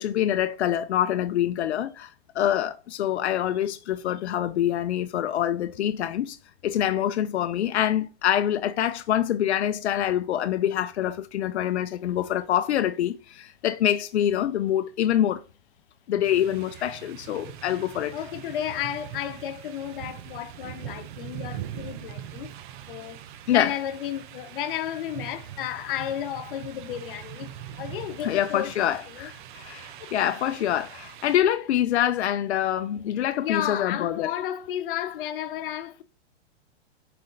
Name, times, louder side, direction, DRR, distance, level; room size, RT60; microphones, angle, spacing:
voice 1, 0.0-6.4 6.6-15.4 16.1-18.1 23.5-23.7 28.2-34.3, left 11 dB, 85° left, 0.6 m, -25 dB
sound 1, 16.2-31.4, right 11 dB, 50° right, 0.6 m, -42 dB
voice 2, 18.1-22.5 22.9-23.2 23.5-29.3 30.0-30.1 33.4-36.0, left 11 dB, 55° left, 0.9 m, -33 dB
6.5 x 4.3 x 3.9 m
hypercardioid pair, 145°, 32 cm